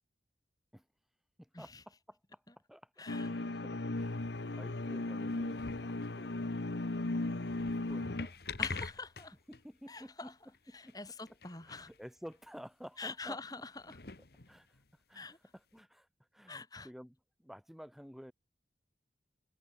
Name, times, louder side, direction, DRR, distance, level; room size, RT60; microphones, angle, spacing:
voice 1, 1.4-2.4 2.7-4.3 4.6-6.4 7.8-8.4 9.5-10.3 10.7-11.0 11.7-13.4 14.5-14.8 15.1-16.1 16.3-18.3, equal, ahead, 2.2 m, -52 dB
voice 2, 3.0-3.3 8.6-9.3 9.9-10.3 10.7-11.9 13.0-14.0 15.1-15.4 16.5-16.9, left 3 dB, 20° left, 4.3 m, -45 dB
sound 1, 3.1-8.3, left 2 dB, 80° left, 1.1 m, -36 dB
sound 2, 4.0-4.6 5.2-6.2 7.3-9.7 10.0-10.1 10.5-10.6 10.9-11.0 11.3-12.0 12.3-12.4 13.2-13.3 13.8-14.9 15.8-15.9, left 5 dB, 65° left, 1.5 m, -45 dB
head